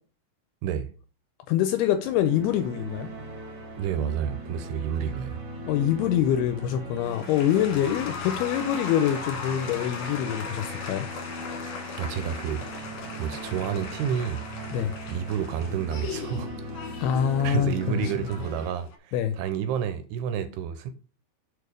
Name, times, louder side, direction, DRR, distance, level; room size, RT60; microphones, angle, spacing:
voice 1, 1.5-3.1 5.7-11.1 14.7-14.9 17.0-18.3 19.1-19.3, left 10 dB, 85° left, 2.3 m, -25 dB
sound 1, 1.7-18.7, equal, 40° right, 1.7 m, -40 dB
voice 2, 3.8-5.4 12.0-12.7 13.2-14.4 15.1-16.5 17.4-20.9, right 8 dB, 80° right, 2.4 m, -30 dB
sound 2, 7.0-19.0, left 5 dB, 65° left, 1.8 m, -38 dB
6.6 x 4.9 x 5.0 m
omnidirectional pair, 5.0 m